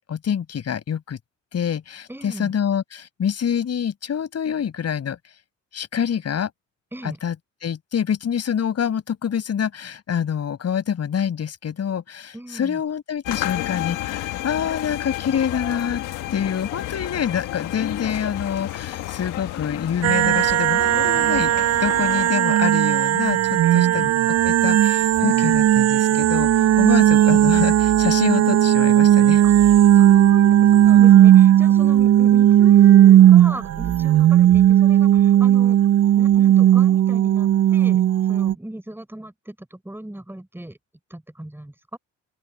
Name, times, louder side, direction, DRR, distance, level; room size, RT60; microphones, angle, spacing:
voice 1, 0.1-1.2 1.5-5.2 5.7-6.5 7.0-7.3 7.6-16.0 16.3-21.5 21.8-29.4, left 8 dB, 55° left, 7.3 m, -26 dB
voice 2, 2.1-2.5 6.9-7.2 12.3-12.8 23.6-24.1 26.8-27.1 29.4-29.5 29.9-35.8 36.2-40.8 41.1-42.0, right 1 dB, 5° right, 7.0 m, -38 dB
sound 1, 13.3-22.3, left 15 dB, 90° left, 1.4 m, -31 dB
sound 2, 20.0-38.5, right 11 dB, 55° right, 0.6 m, -15 dB
open air
cardioid pair, 90°, 30 cm